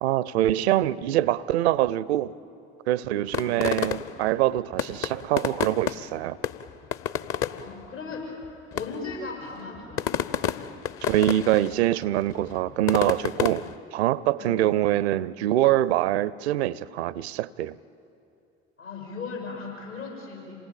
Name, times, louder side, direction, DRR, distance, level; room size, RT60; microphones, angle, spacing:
voice 1, 0.0-2.3 2.9-6.4 11.1-17.8, right 14 dB, 65° right, 0.6 m, -24 dB
sound 1, 3.3-4.3 4.7-6.2 6.4-7.7 8.4-8.5 8.7-9.1 9.8-11.7 12.0-13.7, left 9 dB, 40° left, 0.8 m, -29 dB
voice 2, 3.4-4.0 7.3-8.4 8.7-10.1 14.4-14.7 18.8-20.5, left 4 dB, 80° left, 6.3 m, -38 dB
27.0 x 19.0 x 9.0 m
figure-of-eight pair, 55°, 35 cm